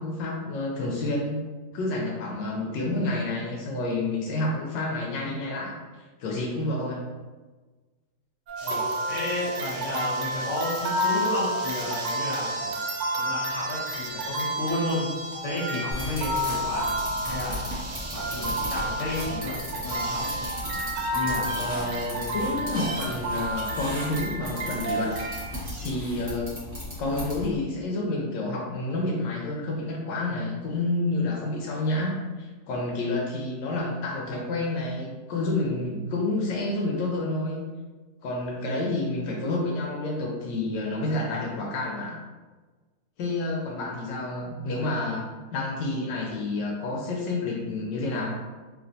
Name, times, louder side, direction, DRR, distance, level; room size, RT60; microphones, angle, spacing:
voice 1, 0.0-1.4 1.7-7.1 21.5-25.1 25.8-26.5 27.0-37.6 38.2-42.2 43.2-48.3, left 2 dB, 75° left, -1 dB, 1.1 m, -29 dB
sound 1, 8.5-25.5, right 1 dB, 90° right, 1.6 m, -31 dB
voice 2, 8.6-12.7 13.2-15.1 15.4-16.9 17.3-17.7 18.1-20.2 21.1-21.5, left 1 dB, 55° left, -8 dB, 0.9 m, -32 dB
sound 2, 8.6-20.6 20.9-21.1 21.5-22.4 22.8-23.2 23.6-23.7 24.6-24.7 24.9-25.9, right 2 dB, 70° right, 1.3 m, -40 dB
sound 3, 15.9-27.6, equal, 10° right, 1.0 m, -36 dB
3.2 x 2.8 x 2.6 m, 1.3 s
omnidirectional pair, 2.3 m